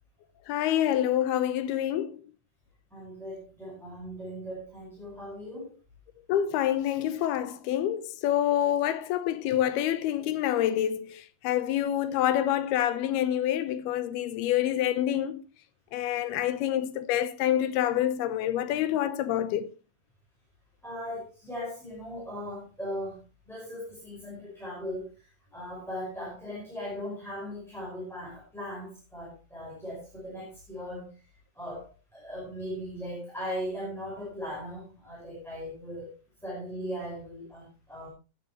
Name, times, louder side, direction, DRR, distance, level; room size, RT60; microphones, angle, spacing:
voice 1, 0.5-2.2 6.3-15.4 15.9-19.7, left 11 dB, 90° left, 2.9 m, -27 dB
voice 2, 2.9-5.7 20.8-25.1 25.5-31.2 31.5-36.1 36.4-38.1, equal, ahead, 5.0 m, -38 dB
18.5 x 9.5 x 3.1 m
omnidirectional pair, 4.4 m